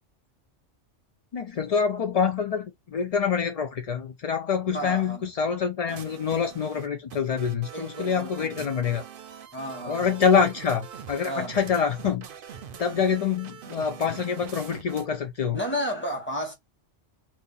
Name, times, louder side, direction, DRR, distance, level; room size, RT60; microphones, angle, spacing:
voice 1, 1.3-9.0 9.8-12.3 12.8-15.6, left 6 dB, 65° left, 0.3 m, -26 dB
voice 2, 4.7-5.2 7.7-8.9 9.5-10.2 11.2-11.6 15.5-16.5, equal, 10° left, 1.2 m, -33 dB
sound 1, 5.9-15.2, right 8 dB, 55° right, 0.7 m, -43 dB
2.8 x 2.5 x 3.7 m
omnidirectional pair, 1.2 m